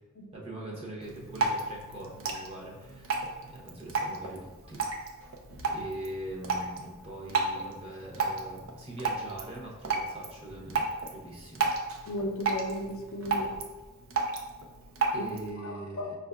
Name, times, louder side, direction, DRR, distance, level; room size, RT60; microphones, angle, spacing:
voice 1, 0.3-5.0 5.7-10.9 11.1-11.7 15.1-16.1, right 1 dB, 30° right, -3 dB, 0.7 m, -42 dB
Drip, 1.0-15.5, right 3 dB, 70° right, 0.5 m, -34 dB
voice 2, 12.1-13.5 15.2-15.3 15.6-16.1, equal, 80° left, 2 dB, 0.5 m, -35 dB
5.4 x 2.5 x 2.2 m, 1.3 s
head